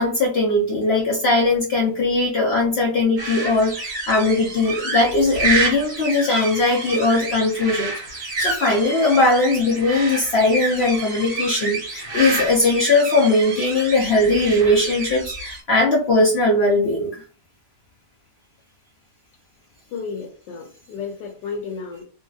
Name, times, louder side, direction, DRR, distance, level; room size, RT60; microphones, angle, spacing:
voice 1, 0.0-17.2, left 2 dB, 65° left, -2 dB, 0.6 m, -19 dB
sound 1, 3.2-15.6, right 3 dB, 40° right, 1.0 m, -28 dB
voice 2, 19.9-22.0, left 5 dB, 90° left, 1 dB, 1.3 m, -32 dB
3.0 x 2.7 x 2.3 m, 0.36 s
omnidirectional pair, 1.8 m